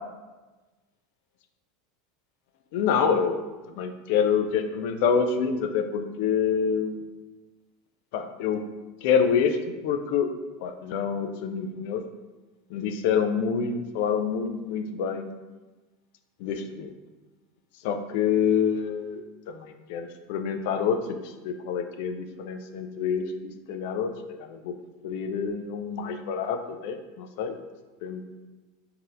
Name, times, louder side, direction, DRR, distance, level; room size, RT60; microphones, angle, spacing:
voice 1, 2.7-7.0 8.1-8.6 9.0-9.6 9.8-10.3 10.6-12.0 12.7-15.3 16.4-16.9 17.8-24.7 25.0-27.6 28.0-28.2, left 6 dB, 65° left, 7 dB, 0.3 m, -27 dB
3.9 x 2.7 x 2.4 m, 1.2 s
supercardioid pair, 130°, 0 cm